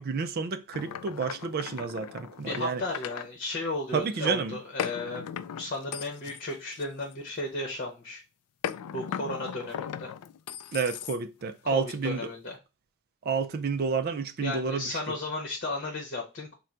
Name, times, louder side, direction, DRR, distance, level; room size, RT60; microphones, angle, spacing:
voice 1, 0.0-2.8 3.9-4.6 10.7-12.3 13.2-15.0, right 5 dB, 45° right, 0.4 m, -30 dB
sound 1, 0.7-3.3 4.8-7.4 8.6-11.5, left 9 dB, 85° left, 0.3 m, -38 dB
voice 2, 2.5-5.2 5.6-8.2 8.9-10.1 11.6-12.6 14.4-16.5, left 2 dB, 40° left, 1.0 m, -34 dB
3.7 x 2.2 x 4.3 m
head